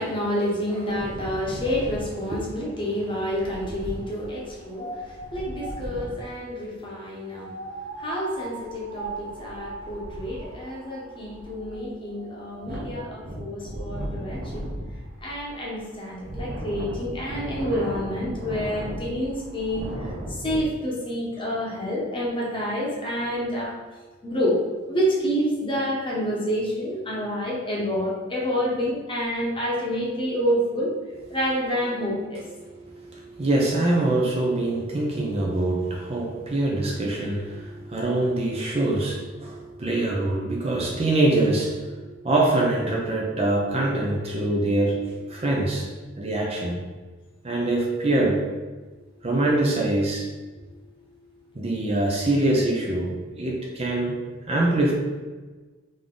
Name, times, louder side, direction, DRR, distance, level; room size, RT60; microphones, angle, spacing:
voice 1, 0.0-14.8 15.2-23.8 24.2-24.6 24.9-30.9 31.3-32.4, equal, 25° left, -3 dB, 0.9 m, -28 dB
Wind, 0.9-6.3 7.3-20.6, right 1 dB, 45° right, 1.1 m, -36 dB
voice 2, 32.6-45.9 46.2-46.8 47.4-48.4 49.2-50.3 51.6-54.2 54.5-54.9, right 2 dB, 30° right, -1 dB, 0.6 m, -24 dB
3.8 x 3.5 x 3.8 m, 1.3 s
head